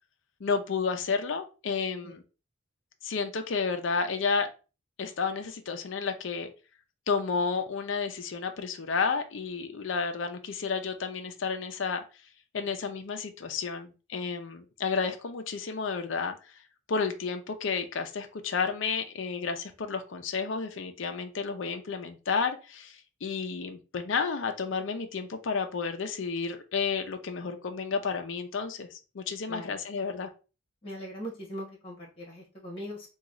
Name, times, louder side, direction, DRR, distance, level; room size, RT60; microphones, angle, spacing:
voice 1, 0.4-2.2 3.0-4.5 5.0-6.5 7.1-12.0 12.5-16.5 16.9-30.3, left 5 dB, 65° left, 6 dB, 0.5 m, -31 dB
voice 2, 30.8-33.1, equal, 25° left, -2 dB, 1.2 m, -40 dB
3.0 x 2.3 x 3.6 m, 0.33 s
head